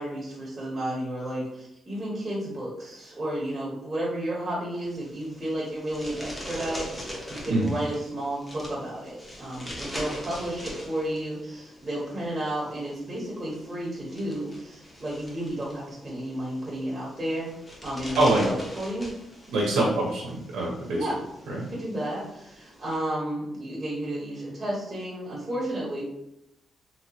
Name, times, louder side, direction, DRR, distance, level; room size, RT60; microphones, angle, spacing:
voice 1, 0.0-17.5 17.8-19.1 19.7-19.9 20.9-21.2 21.5-26.0, right 1 dB, 30° right, -5 dB, 1.1 m, -32 dB
sound 1, 4.7-22.9, equal, 10° left, 0.9 m, -43 dB
voice 2, 19.5-21.1 21.5-21.7, right 2 dB, 90° right, -2 dB, 0.7 m, -24 dB
3.0 x 2.9 x 2.8 m, 0.83 s
cardioid pair, 90°, 0 cm